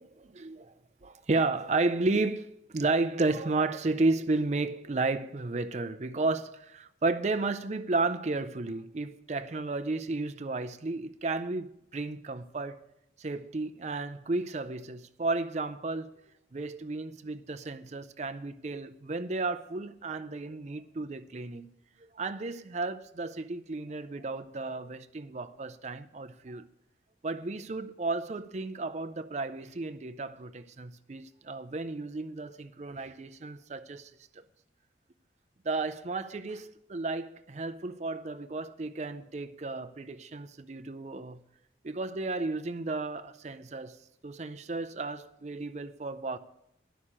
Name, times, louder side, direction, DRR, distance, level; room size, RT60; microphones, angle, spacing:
voice 1, 0.0-0.6 1.0-12.8 13.2-16.1 16.5-21.7 22.2-26.7 27.2-34.1 34.4-34.5 35.6-41.4 41.8-46.4, right 3 dB, 35° right, 0.5 m, -33 dB
11.0 x 6.4 x 8.6 m
head